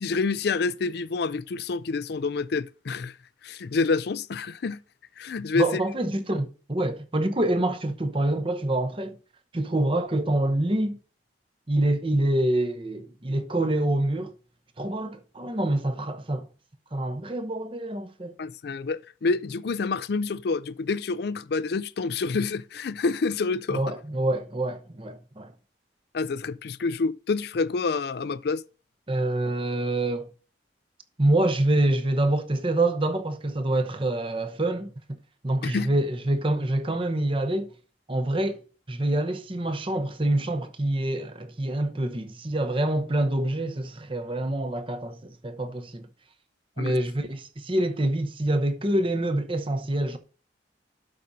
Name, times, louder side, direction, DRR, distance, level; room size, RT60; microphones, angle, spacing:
voice 1, 0.0-3.1 3.4-4.8 5.2-5.7 18.4-23.8 26.1-28.6 35.6-35.9 46.8-47.0, left 4 dB, 60° left, 0.4 m, -28 dB
voice 2, 5.5-9.2 9.5-11.0 11.7-14.3 14.8-16.5 16.9-18.4 23.7-25.5 29.1-30.3 31.2-35.2 35.4-37.7 38.1-38.6 38.9-46.1 46.8-50.2, right 1 dB, 30° right, 0.8 m, -26 dB
12.0 x 5.3 x 2.7 m
head